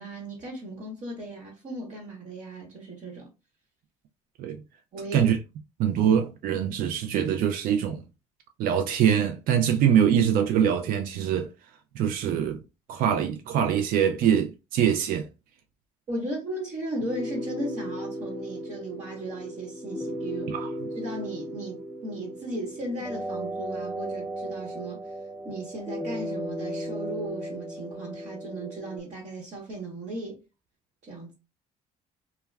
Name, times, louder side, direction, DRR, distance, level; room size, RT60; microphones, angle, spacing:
voice 1, 0.0-3.3 4.9-5.3 16.1-20.6 20.9-25.0 25.4-30.4 31.0-31.3, right 1 dB, 50° right, 1.1 m, -36 dB
voice 2, 5.8-8.0 8.6-11.5 11.9-12.6 12.9-15.3 20.5-20.7, right 9 dB, 65° right, 0.5 m, -23 dB
sound 1, 17.0-29.0, equal, ahead, 0.5 m, -35 dB
2.3 x 2.2 x 3.1 m
supercardioid pair, 80°, 16 cm